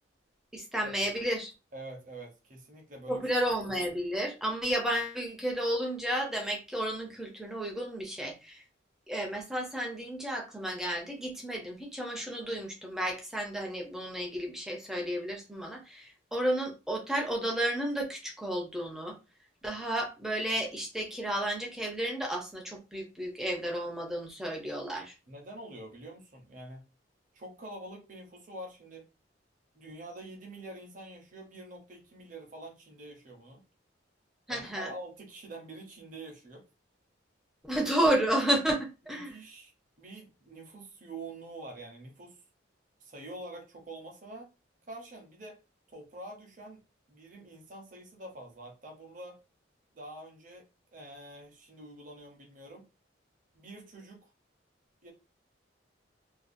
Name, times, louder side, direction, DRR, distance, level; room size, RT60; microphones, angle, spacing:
voice 1, 0.5-1.5 3.1-8.6 9.1-19.1 19.6-25.1 34.5-34.9 37.6-39.3, right 1 dB, 5° right, 0.5 m, -32 dB
voice 2, 1.7-3.3 25.3-26.8 27.3-29.1 29.7-33.6 34.5-36.7 39.0-39.7 40.0-42.4 43.0-44.5 44.9-45.6 45.9-46.8 47.1-49.4 49.9-52.9 53.5-54.3 55.0-55.1, right 2 dB, 40° right, 0.7 m, -46 dB
2.5 x 2.3 x 2.5 m
head